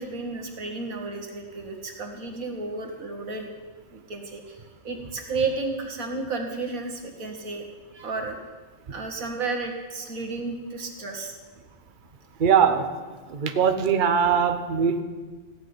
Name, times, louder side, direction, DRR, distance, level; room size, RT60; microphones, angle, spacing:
voice 1, 0.0-3.5 3.9-7.6 7.9-8.4 8.9-11.3, right 3 dB, 85° right, 3 dB, 2.2 m, -32 dB
voice 2, 12.4-12.9 13.3-15.0, right 7 dB, 40° right, 8 dB, 1.0 m, -21 dB
15.5 x 6.2 x 9.6 m, 1.4 s
omnidirectional pair, 1.4 m